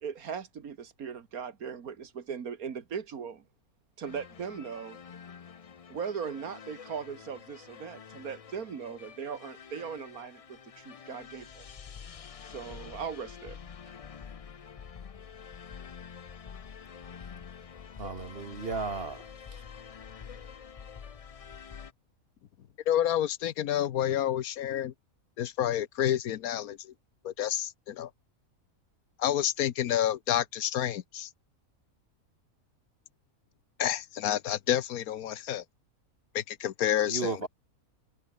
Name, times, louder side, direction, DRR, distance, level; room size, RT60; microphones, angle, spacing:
voice 1, 0.0-3.4 4.0-5.0 5.9-11.7 12.4-13.6, right 7 dB, 85° right, 2.1 m, -39 dB
sound 1, 4.0-21.9, left 7 dB, 65° left, 0.3 m, -47 dB
voice 2, 18.0-19.6 37.1-37.5, right 4 dB, 40° right, 1.8 m, -35 dB
voice 3, 22.9-24.9 25.4-26.9 27.2-28.1 29.2-31.3 33.8-35.6 36.3-37.5, left 11 dB, 80° left, 1.3 m, -29 dB
omnidirectional pair, 1.5 m